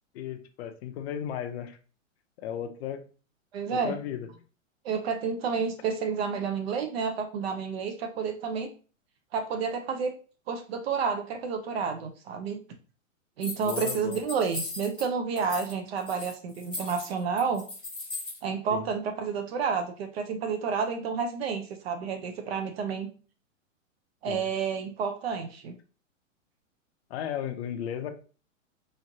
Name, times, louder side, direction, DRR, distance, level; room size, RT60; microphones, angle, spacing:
voice 1, 0.1-1.8 2.4-3.0 3.7-4.3 13.6-14.2 18.7-18.9 24.3-24.4 27.1-28.1, left 9 dB, 55° left, 7 dB, 0.6 m, -35 dB
voice 2, 3.5-4.0 4.8-8.7 9.3-10.1 10.5-12.6 13.4-17.6 18.4-23.1 24.2-25.8, right 6 dB, 50° right, 6 dB, 0.5 m, -30 dB
sound 1, 13.4-15.0 15.4-15.7 16.0-18.4, left 2 dB, ahead, 0.5 m, -37 dB
3.1 x 2.5 x 2.6 m, 0.37 s
hypercardioid pair, 150°, 39 cm